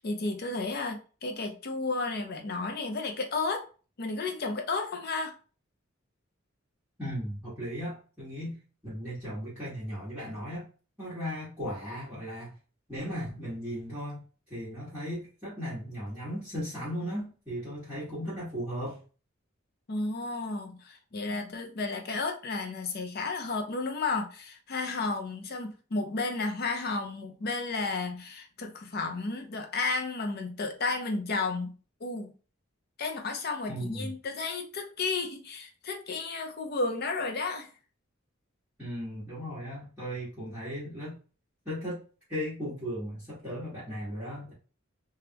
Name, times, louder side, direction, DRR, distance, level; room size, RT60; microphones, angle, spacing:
voice 1, 0.0-3.6 4.0-5.3 19.9-31.7 32.0-32.3 33.0-37.7, left 3 dB, 50° left, 4 dB, 0.6 m, -32 dB
voice 2, 7.0-8.6 8.8-10.7 11.0-12.5 12.9-19.0 33.7-34.1 38.8-41.1 41.6-42.0 42.3-44.5, equal, 10° right, -12 dB, 1.4 m, -36 dB
3.4 x 2.4 x 2.8 m, 0.36 s
head